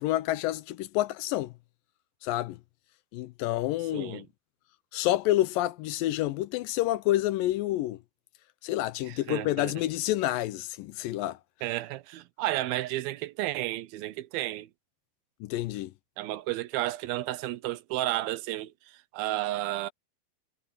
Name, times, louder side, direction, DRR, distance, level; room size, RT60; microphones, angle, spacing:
voice 1, 0.0-1.5 2.2-2.6 3.1-4.3 4.9-8.0 8.6-11.4 15.4-15.9, left 15 dB, 80° left, 2.2 m, -28 dB
voice 2, 3.9-4.2 9.1-9.7 11.6-14.7 16.2-18.7 19.1-19.9, right 15 dB, 80° right, 2.6 m, -32 dB
omnidirectional pair, 4.3 m